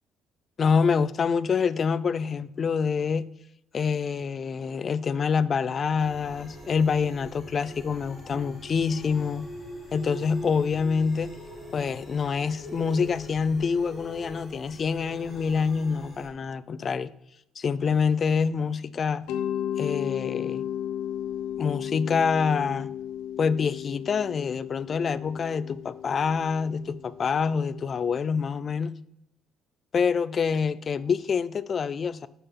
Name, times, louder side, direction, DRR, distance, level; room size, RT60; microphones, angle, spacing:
voice 1, 0.6-3.3 3.7-9.5 9.9-11.3 11.7-17.1 17.6-19.3 19.8-20.6 21.6-22.9 23.4-29.0 29.9-32.3, left 6 dB, 30° left, 0.3 m, -26 dB
sound 1, 6.0-16.3, equal, ahead, 1.9 m, -43 dB
Mallet percussion, 19.3-28.0, left 10 dB, 85° left, 0.6 m, -34 dB
6.8 x 5.6 x 7.2 m
cardioid pair, 180°, 0 cm